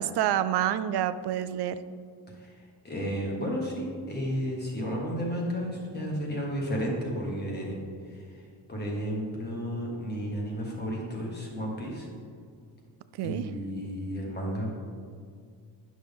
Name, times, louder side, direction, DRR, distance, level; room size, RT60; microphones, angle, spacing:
voice 1, 0.0-1.8 13.2-13.4, right 11 dB, 75° right, 13 dB, 0.5 m, -28 dB
voice 2, 2.4-7.7 8.0-12.1 13.2-14.7, equal, 25° left, -2 dB, 1.6 m, -33 dB
10.5 x 6.2 x 3.5 m, 2.1 s
wide cardioid pair, 170°, 40 cm